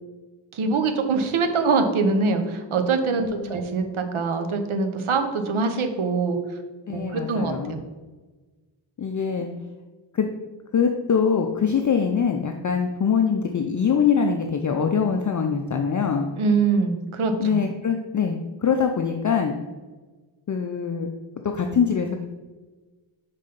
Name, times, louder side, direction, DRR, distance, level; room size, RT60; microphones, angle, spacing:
voice 1, 0.5-6.4 6.9-7.8 16.4-17.6, right 4 dB, 90° right, 6 dB, 0.9 m, -23 dB
voice 2, 3.1-3.6 6.9-7.8 9.0-9.5 10.1-10.3 10.7-16.3 17.4-19.5 20.5-21.1 21.5-22.2, left 6 dB, 40° left, 4 dB, 0.4 m, -23 dB
5.7 x 4.1 x 5.1 m, 1.3 s
wide cardioid pair, 160°, 48 cm